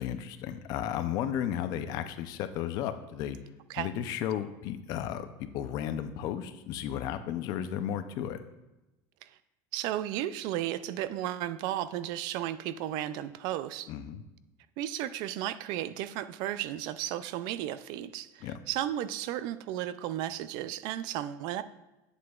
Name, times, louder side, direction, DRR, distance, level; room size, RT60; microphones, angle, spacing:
voice 1, 0.0-3.4 3.8-8.4 13.9-14.2 18.4-18.6, left 10 dB, 45° left, 10 dB, 0.5 m, -34 dB
voice 2, 9.7-13.9 14.8-21.6, right 12 dB, 55° right, 14 dB, 0.3 m, -34 dB
8.1 x 7.6 x 2.4 m, 1.0 s
cardioid pair, 170°, 9 cm